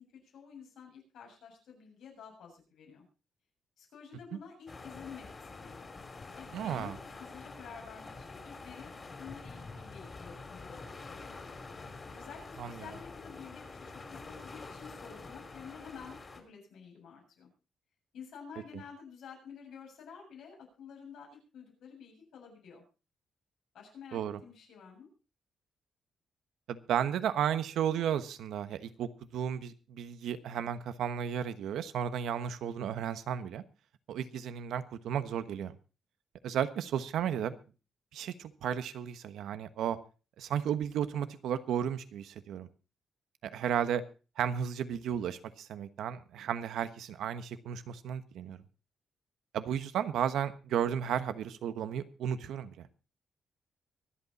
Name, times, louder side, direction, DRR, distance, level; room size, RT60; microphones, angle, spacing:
voice 1, 0.2-3.1 3.8-5.9 6.4-8.9 9.2-11.5 12.1-17.5 18.1-22.8 23.7-25.1, left 6 dB, 90° left, 0 dB, 7.2 m, -50 dB
sound 1, 4.7-16.4, left 3 dB, 30° left, 3.2 m, -47 dB
voice 2, 6.5-6.9 12.6-12.7 24.1-24.4 26.7-33.6 34.1-35.8 36.4-37.5 38.1-40.0 40.4-42.7 43.4-44.0 44.4-48.6 49.5-52.7, right 9 dB, 90° right, 12 dB, 1.2 m, -33 dB
24.5 x 8.4 x 4.2 m, 0.34 s
cardioid pair, 125°, 0 cm